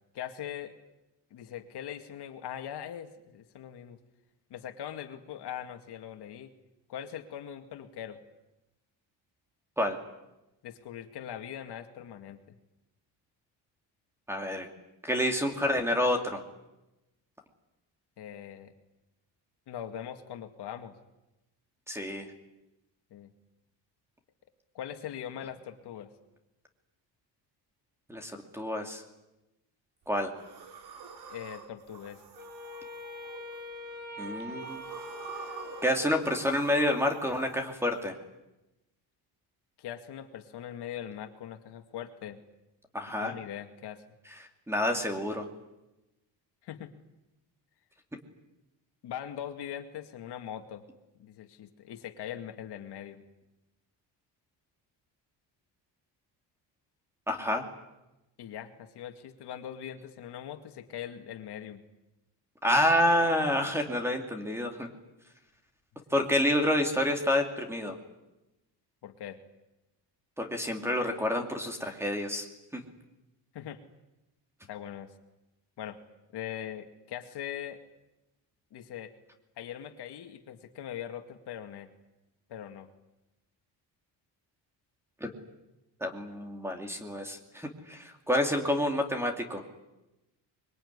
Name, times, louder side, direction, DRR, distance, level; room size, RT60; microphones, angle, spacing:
voice 1, 0.1-0.7 1.3-4.0 4.5-6.5 6.9-8.2 10.6-12.4 18.2-18.7 19.7-20.9 23.1-23.3 24.7-26.1 31.3-32.2 39.8-42.4 43.2-44.0 46.6-46.9 49.0-50.8 51.2-53.2 58.4-61.8 66.1-66.2 69.0-69.4 73.5-73.8 74.7-75.1 75.8-76.0 76.3-77.8 78.7-79.1 79.6-81.9 82.5-82.9, left 10 dB, 65° left, 6 dB, 2.3 m, -41 dB
voice 2, 14.3-14.7 15.0-16.4 21.9-22.3 28.1-29.0 30.1-30.3 34.2-34.8 35.8-38.1 42.9-43.3 44.7-45.5 57.3-57.6 62.6-64.9 66.1-68.0 70.4-72.5 72.7-72.8 85.2-85.3 86.0-89.6, left 1 dB, 5° right, 4 dB, 2.6 m, -28 dB
sound 1, 30.3-33.9 34.4-38.1, right 6 dB, 60° right, 3.5 m, -47 dB
Wind instrument woodwind instrument, 32.3-36.7, left 2 dB, 20° right, 3.5 m, -43 dB
24.5 x 23.0 x 9.8 m, 0.96 s
cardioid pair, 180°, 44 cm